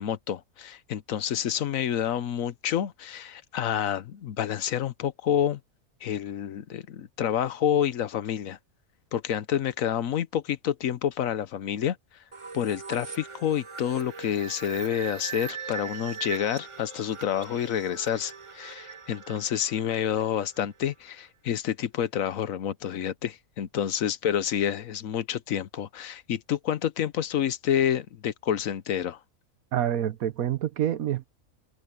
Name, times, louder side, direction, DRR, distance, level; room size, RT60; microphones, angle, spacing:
voice 1, 0.0-5.6 6.0-8.6 9.1-12.0 12.5-29.2, left 9 dB, 75° left, 1.2 m, -28 dB
sound 1, 12.3-20.9, right 6 dB, 25° right, 0.8 m, -41 dB
voice 2, 29.7-31.3, right 10 dB, 85° right, 1.3 m, -27 dB
omnidirectional pair, 1.5 m